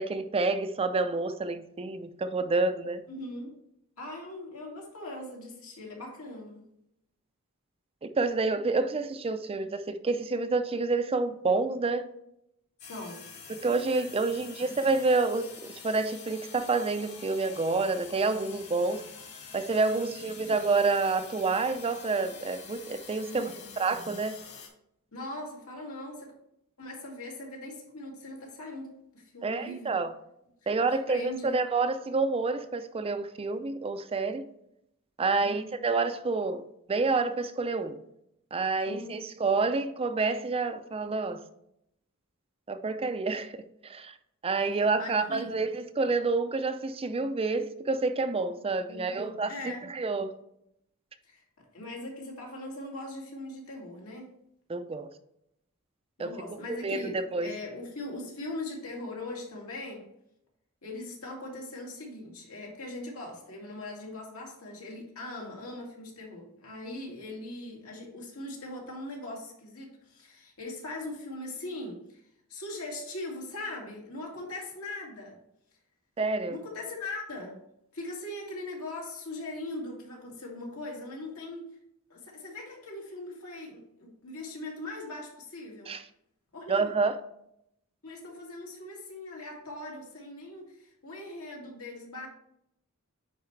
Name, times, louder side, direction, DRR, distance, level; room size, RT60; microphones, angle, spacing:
voice 1, 0.0-3.0 8.0-12.1 13.5-15.5 15.8-19.0 19.5-24.3 29.4-30.1 30.7-34.4 35.2-36.6 36.9-37.9 38.5-41.4 42.7-43.5 43.8-44.1 44.4-49.5 49.9-50.3 54.7-55.1 56.2-56.3 56.7-57.5 76.2-76.6 85.9-86.0 86.7-87.1, right 3 dB, 25° right, 0.5 m, -28 dB
voice 2, 3.1-3.6 4.0-6.6 12.8-13.2 19.9-20.2 23.2-23.7 25.1-26.3 26.8-30.0 30.8-31.6 35.4-35.7 38.8-39.2 44.7-45.6 48.9-49.9 51.2-54.3 56.2-60.1 60.8-72.2 72.5-75.4 76.5-77.6 77.9-81.8 82.1-85.9 86.5-87.0 88.0-92.3, left 2 dB, 70° left, 2.2 m, -40 dB
sound 1, 12.8-24.7, left 6 dB, 50° left, 2.2 m, -47 dB
9.6 x 4.3 x 3.2 m
head